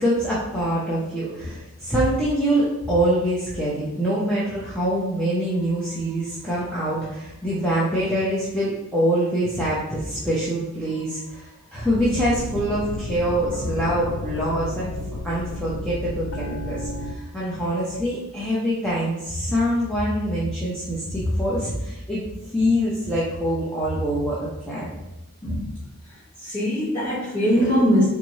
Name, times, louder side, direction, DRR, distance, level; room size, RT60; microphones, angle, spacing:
voice 1, 0.0-14.9 15.2-22.2 22.5-24.9, equal, 5° left, -9 dB, 0.7 m, -24 dB
sound 1, 11.9-17.2, left 2 dB, 60° left, 0.4 m, -32 dB
voice 2, 26.4-28.1, equal, 20° left, -13 dB, 1.4 m, -21 dB
4.1 x 3.5 x 3.1 m, 1.0 s
head